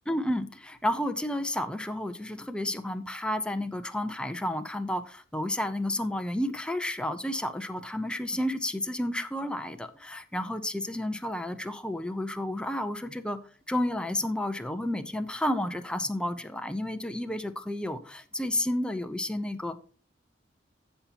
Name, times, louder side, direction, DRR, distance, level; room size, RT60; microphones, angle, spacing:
voice 1, 0.1-13.4 13.7-19.8, left 1 dB, 5° left, 0.8 m, -31 dB
15.0 x 5.7 x 2.9 m
head